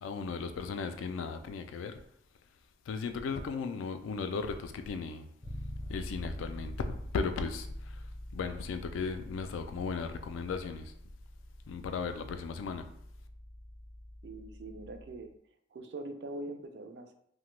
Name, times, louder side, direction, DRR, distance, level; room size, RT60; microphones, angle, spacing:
voice 1, 0.0-2.0 2.9-5.4 5.9-8.0 8.3-10.9 11.7-13.0, left 5 dB, 90° left, 0.3 m, -36 dB
Bass guitar, 5.4-15.3, left 1 dB, 20° left, 0.4 m, -45 dB
voice 2, 14.2-15.3 15.7-17.1, right 2 dB, 60° right, 0.3 m, -42 dB
2.8 x 2.1 x 3.1 m
head